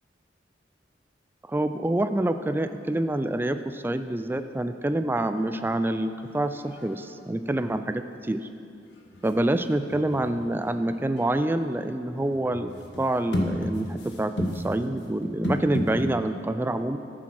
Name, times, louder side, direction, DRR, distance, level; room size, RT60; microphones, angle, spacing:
voice 1, 1.5-8.5 9.2-17.0, right 1 dB, 10° right, 9 dB, 0.3 m, -27 dB
sound 1, 6.3-6.4 6.6-7.1 9.0-16.3, left 1 dB, 65° left, 1.6 m, -33 dB
13.5 x 7.5 x 6.0 m, 2.5 s
head